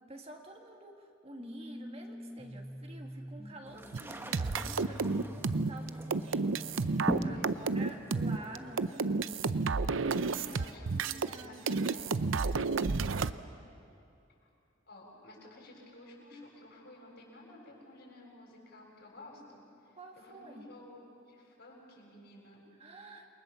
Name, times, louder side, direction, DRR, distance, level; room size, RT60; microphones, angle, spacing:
voice 1, 0.0-9.5 10.0-11.6 13.1-13.4 19.9-20.7 22.8-23.3, right 1 dB, 30° right, 2 dB, 2.0 m, -49 dB
sound 1, 1.4-7.3, equal, 10° left, 3.0 m, -46 dB
sound 2, 3.6-8.9, right 1 dB, 10° right, 1.4 m, -40 dB
sound 3, 3.9-11.4 11.7-13.3, right 4 dB, 80° right, 0.7 m, -31 dB
voice 2, 7.3-7.9 10.4-12.6 14.4-14.5 14.9-22.6, left 1 dB, 60° left, -2 dB, 7.6 m, -53 dB
28.5 x 23.0 x 7.1 m, 2.7 s
head